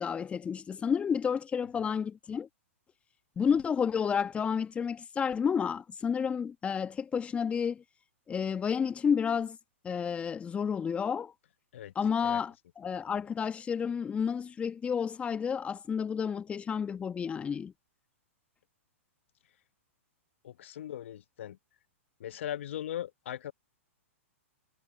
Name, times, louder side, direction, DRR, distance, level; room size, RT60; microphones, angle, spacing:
voice 1, 0.0-2.5 3.4-7.8 8.3-9.6 9.8-11.3 11.9-17.7, left 7 dB, 15° left, 1.6 m, -31 dB
voice 2, 20.4-21.6 22.2-23.5, left 11 dB, 60° left, 1.3 m, -39 dB
figure-of-eight pair, 110°, 7 cm